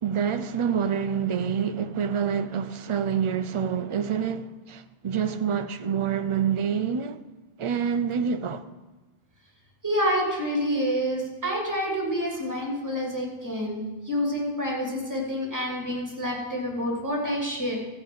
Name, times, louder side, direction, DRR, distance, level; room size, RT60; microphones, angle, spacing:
voice 1, 0.0-7.2 7.6-8.6, right 7 dB, 40° right, 0.5 m, -27 dB
voice 2, 9.8-17.7, equal, 15° right, 2.7 m, -28 dB
14.5 x 5.4 x 7.6 m
omnidirectional pair, 1.1 m